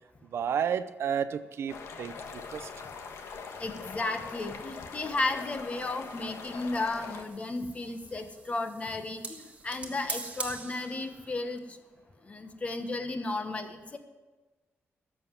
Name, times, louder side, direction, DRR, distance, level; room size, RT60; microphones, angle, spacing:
voice 1, 0.2-2.7, right 8 dB, 70° right, 13 dB, 0.6 m, -32 dB
sound 1, 1.7-7.2, left 5 dB, 80° left, 1.3 m, -43 dB
sound 2, 2.2-11.6, right 3 dB, 30° right, 1.6 m, -46 dB
voice 2, 3.6-11.8 12.3-14.0, left 2 dB, 30° left, 7 dB, 1.2 m, -34 dB
12.5 x 7.5 x 9.6 m, 1.2 s
wide cardioid pair, 140°, 5 cm